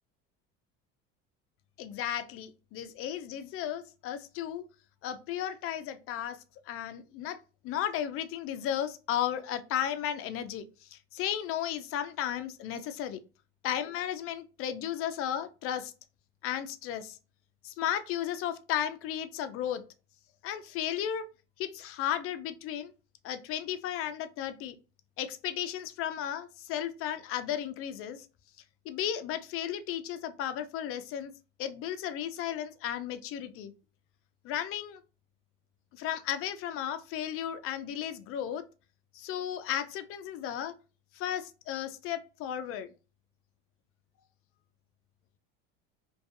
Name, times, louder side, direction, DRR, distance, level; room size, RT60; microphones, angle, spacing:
voice 1, 1.8-4.6 5.0-7.4 7.6-13.2 13.6-15.9 16.4-17.2 17.6-19.8 20.4-21.3 21.6-22.9 23.2-24.8 25.2-28.3 28.9-31.3 31.6-33.7 34.4-35.0 35.9-38.6 39.1-40.7 41.1-42.9, left 10 dB, 50° left, 0.4 m, -34 dB
2.5 x 2.3 x 2.4 m
supercardioid pair, 110°, 29 cm